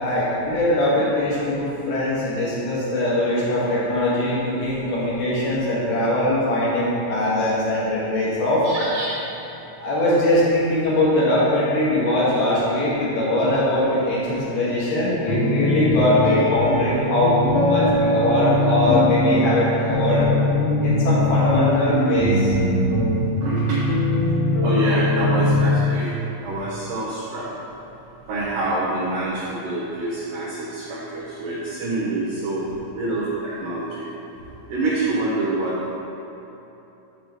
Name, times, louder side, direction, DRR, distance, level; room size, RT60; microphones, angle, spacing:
voice 1, 0.0-8.6 9.8-20.3 20.8-22.6, left 1 dB, 65° left, -8 dB, 3.2 m, -21 dB
voice 2, 8.6-9.2 17.4-17.5 23.4-23.9 24.6-26.1 26.4-27.5 28.3-32.6 33.0-34.1 34.7-36.0, right 2 dB, 80° right, -6 dB, 1.9 m, -26 dB
sound 1, 15.3-25.7, left 1 dB, 90° left, 1.7 m, -21 dB
7.9 x 3.7 x 6.6 m, 2.9 s
omnidirectional pair, 5.3 m